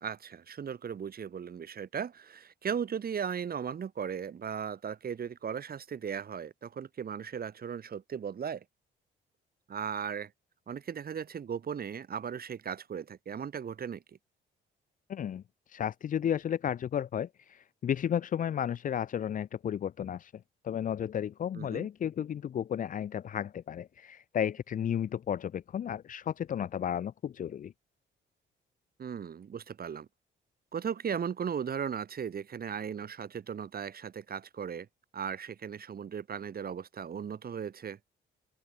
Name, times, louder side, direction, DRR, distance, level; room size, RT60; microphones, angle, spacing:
voice 1, 0.0-8.6 9.7-10.3 10.7-14.0 21.5-21.9 29.0-30.1 30.7-34.9 35.1-38.0, right 7 dB, 50° right, 3.3 m, -37 dB
voice 2, 15.1-20.3 20.6-27.7, left 9 dB, 40° left, 0.5 m, -33 dB
open air
cardioid pair, 90°, 20 cm